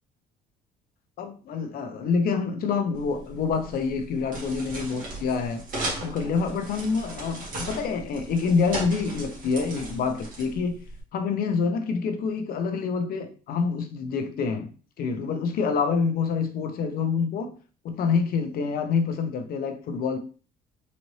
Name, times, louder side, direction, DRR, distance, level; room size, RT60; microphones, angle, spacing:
voice 1, 1.2-5.6 6.0-10.8 11.1-14.7 15.0-17.5 17.8-20.2, left 5 dB, 60° left, 0.7 m, -27 dB
sound 1, 3.0-11.0, right 2 dB, 55° right, 1.7 m, -37 dB
4.1 x 2.5 x 3.2 m
cardioid pair, 110°, 17 cm